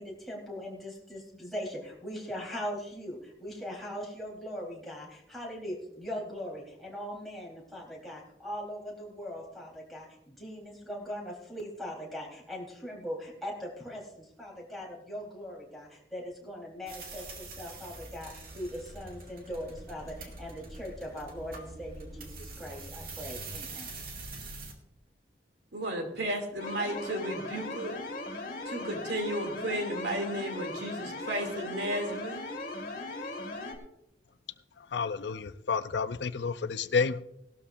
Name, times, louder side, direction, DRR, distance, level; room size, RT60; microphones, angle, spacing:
voice 1, 0.0-23.9, equal, ahead, -4 dB, 3.7 m, -40 dB
sound 1, 16.9-24.7, right 3 dB, 55° right, 2.2 m, -44 dB
voice 2, 25.7-27.9 28.7-32.4, right 1 dB, 80° right, 3 dB, 2.6 m, -33 dB
sound 2, 26.6-33.8, left 2 dB, 50° left, 2.1 m, -38 dB
voice 3, 34.8-37.2, left 5 dB, 85° left, 13 dB, 0.6 m, -30 dB
18.0 x 12.5 x 2.6 m, 0.80 s
head